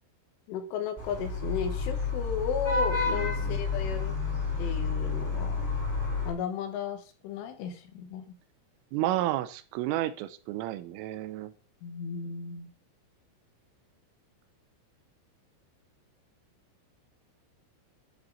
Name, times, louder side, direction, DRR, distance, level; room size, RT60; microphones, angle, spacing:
voice 1, 0.5-4.2 4.6-5.6 6.3-8.3 11.8-12.7, left 7 dB, 75° left, 6 dB, 3.9 m, -34 dB
Vehicle horn car horn honking / Traffic noise roadway noise, 1.0-6.3, left 4 dB, 5° left, 3.2 m, -30 dB
voice 2, 3.1-3.6 8.9-11.5, right 14 dB, 85° right, 13 dB, 3.3 m, -32 dB
12.5 x 7.2 x 4.0 m, 0.37 s
omnidirectional pair, 5.8 m